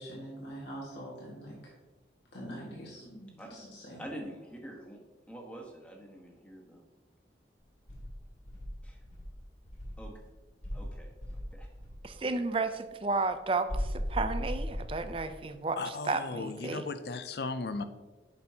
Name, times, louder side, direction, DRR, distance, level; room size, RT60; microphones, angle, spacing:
voice 1, 0.0-1.6 2.3-4.0, equal, 75° left, -5 dB, 1.8 m, -44 dB
voice 2, 4.0-5.0 5.3-6.8 8.8-9.0 10.0-10.1 10.7-11.7 16.7-16.8, right 1 dB, 5° left, -1 dB, 1.2 m, -46 dB
Insect, 7.9-10.1 10.6-12.0 13.7-15.4, equal, 45° left, 2.1 m, -37 dB
voice 3, 12.0-16.9, right 3 dB, 30° right, 10 dB, 0.4 m, -32 dB
voice 4, 15.8-17.8, left 3 dB, 60° left, 11 dB, 0.5 m, -36 dB
8.7 x 6.1 x 2.8 m, 1.3 s
head